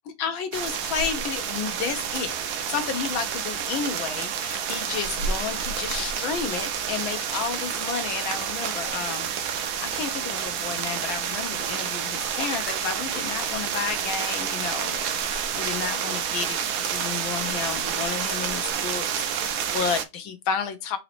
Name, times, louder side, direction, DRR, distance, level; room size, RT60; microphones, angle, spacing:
voice 1, 0.2-2.3 2.7-21.0, left 6 dB, 75° left, 1.4 m, -32 dB
sound 1, 0.5-20.0, right 8 dB, 85° right, 0.8 m, -29 dB
4.0 x 2.7 x 4.2 m
omnidirectional pair, 2.3 m